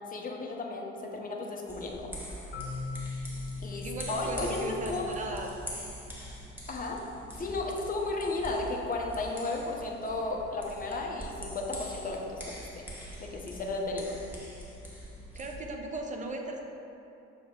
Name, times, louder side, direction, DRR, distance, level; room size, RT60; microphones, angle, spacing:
voice 1, 0.1-2.1 3.6-5.1 6.7-7.0 7.4-12.8 13.2-14.2, left 2 dB, 25° left, 0 dB, 0.6 m, -34 dB
sound 1, 1.7-15.5, equal, 5° right, 1.0 m, -44 dB
Marimba xylophone, 2.5-6.4, left 4 dB, 75° left, 0.5 m, -41 dB
voice 2, 3.7-5.5 15.4-16.6, right 2 dB, 20° right, 2 dB, 0.6 m, -37 dB
6.2 x 2.1 x 3.5 m, 2.9 s
figure-of-eight pair, 45°, 35 cm